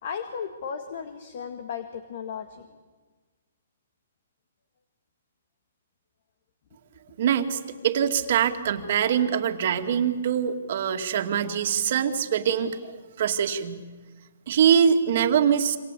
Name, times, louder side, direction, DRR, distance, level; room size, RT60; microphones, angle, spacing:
voice 1, 0.0-2.8, left 7 dB, 50° left, 7 dB, 2.0 m, -35 dB
voice 2, 7.2-13.8 14.5-15.8, right 8 dB, 50° right, 5 dB, 2.4 m, -23 dB
27.5 x 25.5 x 8.5 m, 1.3 s
hypercardioid pair, 165°, 0 cm